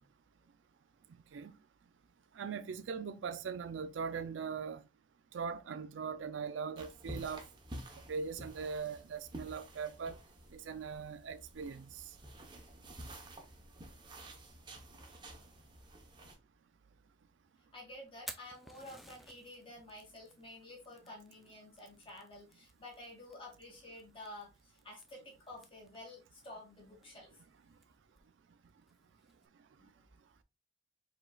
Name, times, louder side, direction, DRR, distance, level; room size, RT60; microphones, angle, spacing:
voice 1, 2.4-4.8 5.3-7.5 8.1-10.2 10.5-12.0, right 5 dB, 80° right, 0.4 m, -40 dB
sound 1, 6.8-16.4, right 1 dB, 25° right, 0.9 m, -51 dB
voice 2, 17.7-27.4 29.8-30.1, left 1 dB, 30° left, 2.3 m, -51 dB
Fire, 18.0-29.5, right 1 dB, ahead, 0.4 m, -57 dB
4.9 x 3.9 x 2.3 m
head